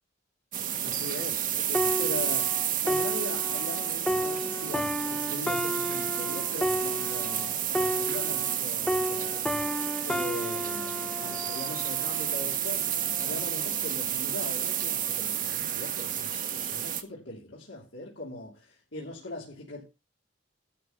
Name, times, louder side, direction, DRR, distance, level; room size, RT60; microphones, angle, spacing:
sound 1, 0.5-17.0, right 10 dB, 45° right, 1.4 m, -31 dB
voice 1, 0.8-2.6 2.8-9.6 10.0-12.9 13.2-19.8, left 2 dB, 80° left, 3.3 m, -40 dB
sound 2, 1.7-8.6 8.9-12.5 13.1-13.3, equal, 5° left, 0.5 m, -32 dB
12.5 x 4.5 x 8.1 m
head